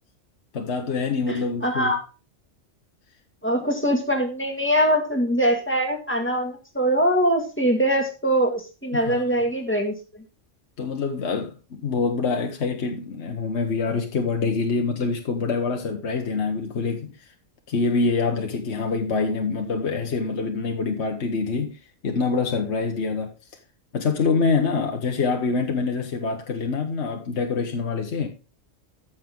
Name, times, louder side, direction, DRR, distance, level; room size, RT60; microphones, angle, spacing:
voice 1, 0.5-1.9 8.9-9.2 10.8-17.1 17.7-21.8 22.0-23.3 23.9-28.3, left 4 dB, 60° left, 1.4 m, -25 dB
voice 2, 1.3-2.0 3.4-10.2, equal, 10° left, 1.9 m, -23 dB
14.0 x 6.2 x 3.6 m
omnidirectional pair, 1.3 m